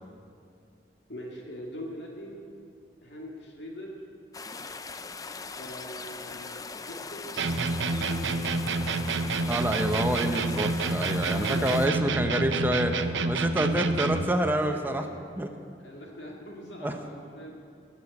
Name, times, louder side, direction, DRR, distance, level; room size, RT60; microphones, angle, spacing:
voice 1, 1.1-2.4 3.0-4.0 5.6-7.4 7.9-8.6 11.4-12.8 14.6-15.1 15.4-17.7, equal, 65° left, -1 dB, 2.3 m, -43 dB
sound 1, 4.3-11.9, left 4 dB, 20° left, 0.5 m, -40 dB
sound 2, 7.4-14.4, right 3 dB, 85° right, 0.7 m, -28 dB
voice 2, 9.5-13.0 13.2-15.1 15.4-15.5 16.8-16.9, right 1 dB, 10° right, 5 dB, 0.9 m, -27 dB
20.0 x 7.1 x 8.5 m, 2.4 s
head